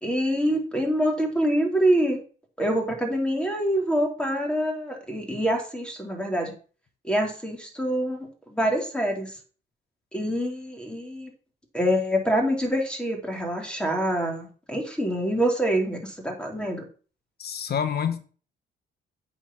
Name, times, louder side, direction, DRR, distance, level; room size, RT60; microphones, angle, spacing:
voice 1, 0.0-2.2 2.6-6.5 7.0-9.4 10.1-11.3 11.7-16.9, equal, 5° left, 3.6 m, -25 dB
voice 2, 17.4-18.2, left 8 dB, 55° left, 1.4 m, -27 dB
8.8 x 5.2 x 6.2 m
cardioid pair, 90°, 20 cm